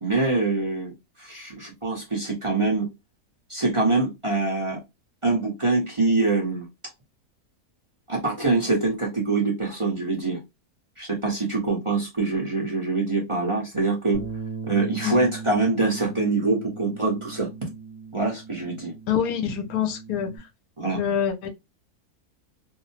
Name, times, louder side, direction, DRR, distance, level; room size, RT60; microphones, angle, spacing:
voice 1, 0.0-0.9 1.2-2.9 3.5-4.8 5.2-6.7 8.1-10.4 11.0-14.2 14.6-17.5 18.1-18.9 20.8-21.0, right 3 dB, 30° right, 0.6 m, -24 dB
Bass guitar, 14.1-20.4, right 5 dB, 10° left, 0.6 m, -38 dB
voice 2, 19.1-20.5 20.9-21.5, left 9 dB, 75° left, 1.1 m, -26 dB
2.6 x 2.1 x 2.7 m
omnidirectional pair, 1.6 m